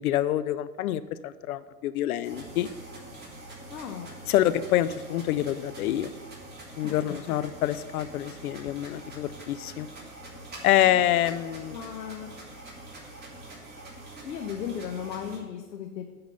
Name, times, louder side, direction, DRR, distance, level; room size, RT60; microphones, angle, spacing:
voice 1, 0.0-2.7 4.3-6.1 6.8-9.9 10.6-11.8, left 12 dB, 60° left, 15 dB, 0.6 m, -26 dB
sound 1, 2.2-15.4, right 2 dB, 20° right, 2.5 m, -44 dB
voice 2, 3.7-4.2 6.8-7.2 11.7-12.3 14.2-16.1, left 8 dB, 80° left, 3 dB, 1.0 m, -36 dB
9.6 x 4.0 x 6.7 m, 1.3 s
hypercardioid pair, 115°, 49 cm